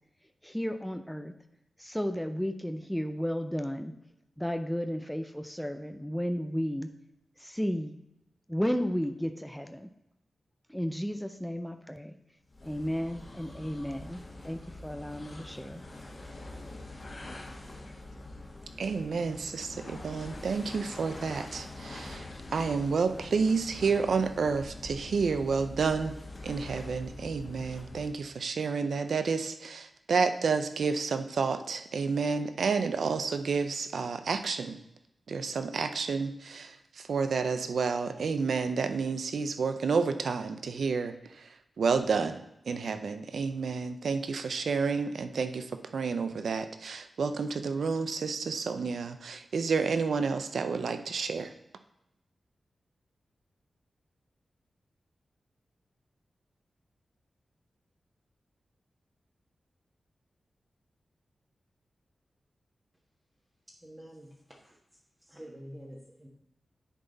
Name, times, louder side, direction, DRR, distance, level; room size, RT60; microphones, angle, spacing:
voice 1, 0.4-1.3 1.8-3.9 4.4-6.9 7.4-7.9 8.5-9.9 10.7-12.1 12.6-15.8, equal, 5° left, 7 dB, 0.5 m, -33 dB
sound 1, 12.5-28.3, left 2 dB, 45° left, 1.5 m, -45 dB
voice 2, 18.8-26.2 26.4-34.8 35.3-51.5, right 5 dB, 80° right, 9 dB, 0.5 m, -30 dB
voice 3, 63.8-64.7 65.2-66.3, equal, 20° right, -4 dB, 1.5 m, -48 dB
10.0 x 3.9 x 4.0 m, 0.85 s
cardioid pair, 65°, 0 cm